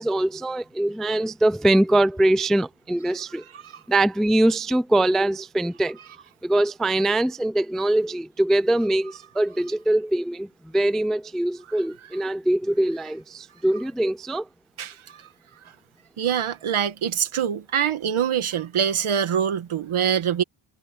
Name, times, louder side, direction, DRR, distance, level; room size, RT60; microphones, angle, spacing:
voice 1, 0.0-3.4 3.9-6.0 6.4-10.5 10.7-14.5, right 1 dB, ahead, 0.3 m, -22 dB
voice 2, 14.8-15.3 16.2-20.4, right 8 dB, 75° right, 1.9 m, -24 dB
wide cardioid pair, 175°, 50 cm